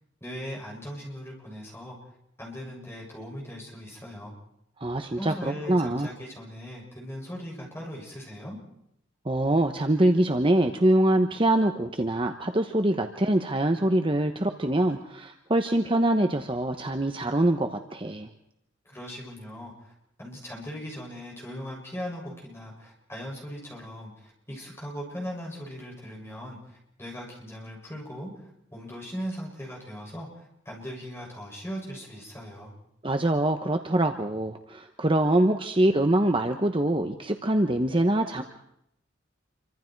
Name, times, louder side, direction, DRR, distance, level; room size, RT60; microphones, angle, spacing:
voice 1, 0.2-2.0 2.4-4.3 5.2-8.6 18.9-19.9 20.2-32.7, equal, 15° left, -2 dB, 7.1 m, -39 dB
voice 2, 4.8-5.3 5.7-6.1 9.2-18.3 33.0-38.4, right 1 dB, 25° right, 5 dB, 1.1 m, -24 dB
28.0 x 25.0 x 4.7 m, 0.78 s
head